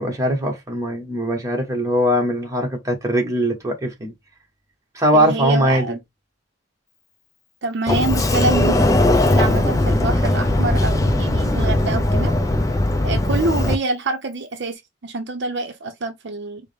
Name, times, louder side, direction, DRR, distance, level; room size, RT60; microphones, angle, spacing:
voice 1, 0.0-4.1 4.9-6.0, equal, 15° right, 1.1 m, -21 dB
voice 2, 5.1-6.0 7.6-8.9 9.2-12.3 13.0-16.6, right 2 dB, 60° right, 0.6 m, -26 dB
Sliding door, 7.9-13.8, left 1 dB, 15° left, 0.4 m, -18 dB
4.6 x 2.1 x 3.3 m
head